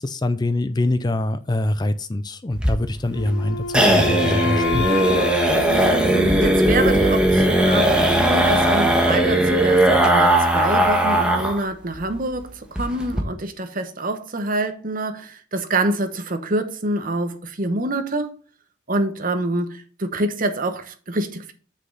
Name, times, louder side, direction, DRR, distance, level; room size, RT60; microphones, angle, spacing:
voice 1, 0.0-4.9, left 1 dB, 20° left, 0.4 m, -24 dB
sound 1, 2.5-11.6 11.9-12.0 12.3-12.4 12.8-13.2, right 1 dB, 5° right, 1.3 m, -18 dB
Wind instrument woodwind instrument, 3.1-7.1, left 3 dB, 85° left, 0.6 m, -29 dB
voice 2, 5.7-18.3 18.9-21.5, right 2 dB, 40° right, 1.1 m, -26 dB
7.7 x 6.4 x 4.0 m
head